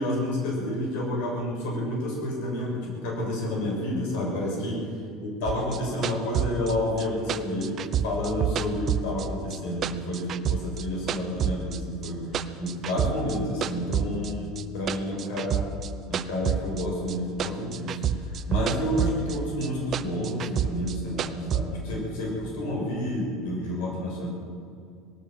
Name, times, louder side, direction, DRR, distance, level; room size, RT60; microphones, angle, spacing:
voice 1, 0.0-4.8 5.2-12.2 12.6-15.6 16.1-24.3, left 1 dB, 70° left, -1 dB, 6.7 m, -30 dB
sound 1, 5.5-9.6 9.8-11.8 12.0-13.4 13.6-17.1 17.4-19.4 19.6-21.6, right 8 dB, 30° right, 0.8 m, -28 dB
20.0 x 17.5 x 7.8 m, 2.4 s
cardioid pair, 165°, 0 cm